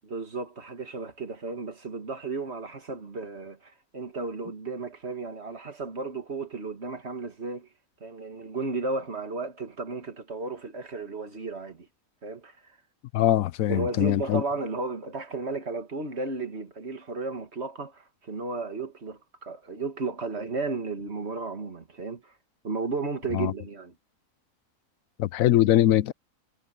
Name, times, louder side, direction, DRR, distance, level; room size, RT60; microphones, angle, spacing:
voice 1, 0.1-7.7 8.0-11.9 12.2-12.8 13.7-22.3 22.6-23.9, right 3 dB, 50° right, 2.4 m, -34 dB
voice 2, 13.1-14.4 23.3-23.5 25.2-26.1, left 13 dB, 85° left, 1.0 m, -22 dB
omnidirectional pair, 1.4 m